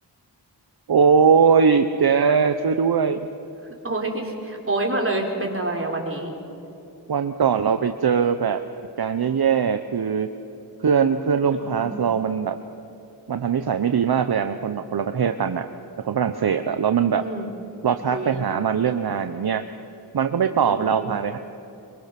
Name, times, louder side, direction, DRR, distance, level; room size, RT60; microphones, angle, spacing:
voice 1, 0.9-3.3 7.1-8.6 9.0-10.3 10.8-12.6 13.3-15.7 16.0-17.2 17.8-19.6 20.1-21.4, right 6 dB, 60° right, 9 dB, 0.9 m, -21 dB
voice 2, 3.8-6.3 11.6-12.1 17.1-17.5 18.1-18.3 20.7-21.2, right 2 dB, 30° right, 0 dB, 4.3 m, -27 dB
24.5 x 23.5 x 6.0 m, 2.9 s
wide cardioid pair, 70°, 43 cm